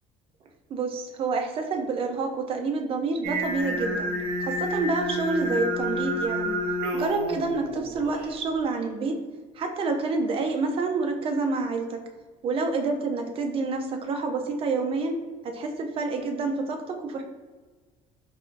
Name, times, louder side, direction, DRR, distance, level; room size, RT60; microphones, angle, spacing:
voice 1, 0.7-4.1 4.4-6.6 6.9-9.2 9.6-12.0 12.4-15.2 15.4-17.2, right 3 dB, 40° right, 4 dB, 0.5 m, -28 dB
Singing, 3.2-8.3, equal, 80° right, 0.9 m, -29 dB
4.7 x 2.5 x 2.6 m, 1.3 s
cardioid pair, 140°, 15 cm